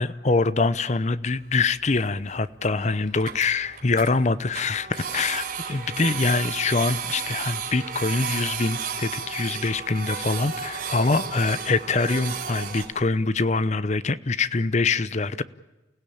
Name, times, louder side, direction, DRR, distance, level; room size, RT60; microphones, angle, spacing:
voice 1, 0.0-15.4, left 3 dB, 40° left, 0.7 m, -24 dB
Printer, 1.3-1.6 2.0-2.1 2.4-2.5 2.8-2.9 3.1-4.1 4.5-12.8, right 6 dB, 50° right, 3.8 m, -33 dB
29.0 x 16.5 x 8.6 m
head